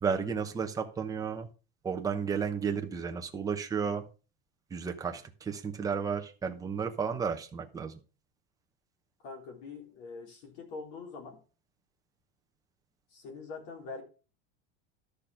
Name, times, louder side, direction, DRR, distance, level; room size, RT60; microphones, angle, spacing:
voice 1, 0.0-1.5 1.8-4.0 4.7-8.0, right 6 dB, 10° right, 4 dB, 1.0 m, -33 dB
voice 2, 9.2-11.4 13.1-14.0, left 4 dB, 50° left, 2 dB, 3.9 m, -44 dB
12.0 x 6.8 x 5.0 m, 0.34 s
cardioid pair, 175°, 30 cm